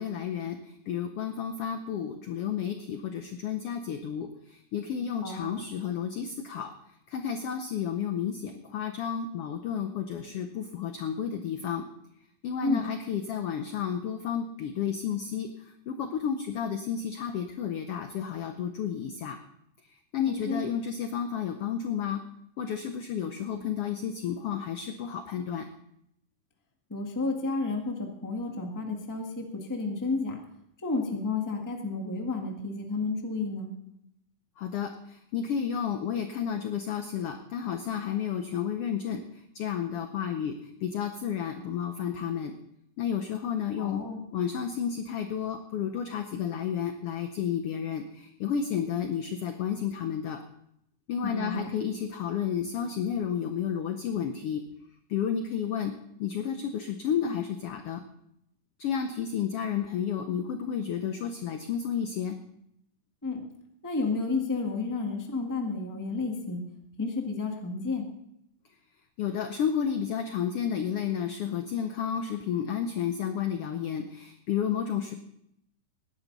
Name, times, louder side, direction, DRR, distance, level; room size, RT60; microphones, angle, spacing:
voice 1, 0.0-6.7 7.1-11.9 12.4-19.4 20.1-22.2 22.6-25.7 34.6-42.5 43.0-44.0 44.3-50.4 51.1-54.6 55.1-55.9 56.2-58.0 58.8-62.4 69.2-75.1, left 8 dB, 80° left, 7 dB, 1.3 m, -31 dB
voice 2, 5.2-5.6 12.6-12.8 20.5-20.6 26.9-30.4 30.8-33.7 43.8-44.2 51.2-51.7 63.2-63.4 63.8-66.6 67.0-68.1, left 3 dB, 10° left, 2 dB, 0.8 m, -31 dB
19.0 x 10.5 x 4.0 m, 0.76 s
omnidirectional pair, 3.6 m